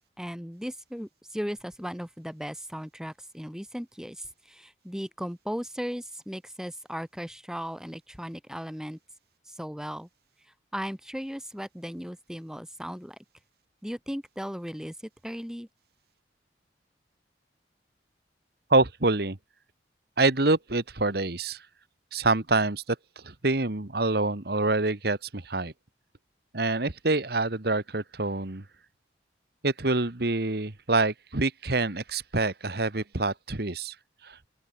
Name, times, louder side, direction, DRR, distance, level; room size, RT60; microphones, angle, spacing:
voice 1, 0.2-9.0 9.5-10.1 10.7-13.2 13.8-14.9 15.2-15.7, equal, 5° right, 4.0 m, -37 dB
voice 2, 18.7-19.4 20.2-21.6 22.1-22.8 23.2-25.7 26.5-28.6 29.6-33.9 34.2-34.4, right 3 dB, 60° right, 1.6 m, -26 dB
open air
head